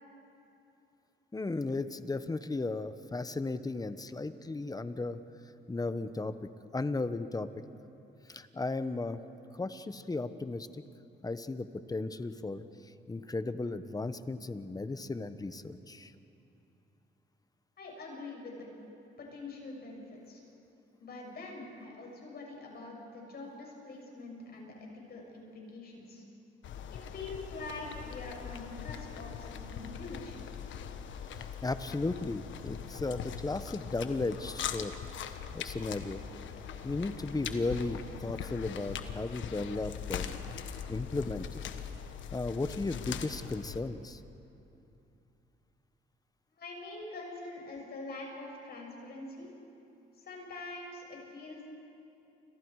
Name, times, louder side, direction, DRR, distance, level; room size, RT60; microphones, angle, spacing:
voice 1, 1.3-5.2 5.7-6.3 6.7-7.5 8.3-9.2 9.5-10.8 11.2-16.1 31.3-35.0 35.2-36.2 36.8-40.4 40.9-41.6 42.3-44.2, left 3 dB, 20° left, 11 dB, 1.1 m, -35 dB
voice 2, 17.8-18.7 19.2-20.4 21.0-26.2 26.9-30.4 46.6-49.5 50.2-51.7, left 2 dB, 50° left, -1 dB, 7.4 m, -44 dB
sound 1, 26.6-43.8, left 8 dB, 75° left, 1.4 m, -41 dB
29.5 x 26.5 x 4.9 m, 2.8 s
cardioid pair, 90°, 20 cm